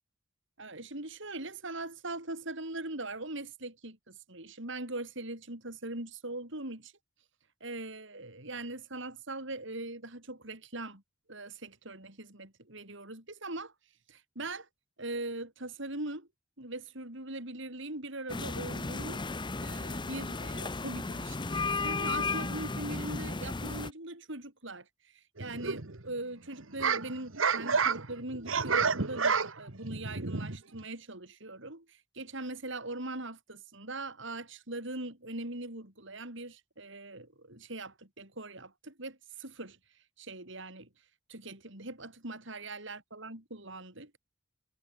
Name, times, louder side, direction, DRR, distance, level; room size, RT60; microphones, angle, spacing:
voice 1, 0.6-6.9 7.6-11.0 11.3-13.7 14.1-14.7 15.0-16.3 16.6-19.3 19.6-24.9 25.4-39.8 40.2-40.9 41.3-44.1, right 2 dB, 65° right, 7.0 m, -41 dB
sound 1, 18.3-23.9, left 3 dB, 25° left, 0.8 m, -34 dB
sound 2, 25.4-26.1 26.5-30.8, right 5 dB, 85° right, 1.8 m, -30 dB
head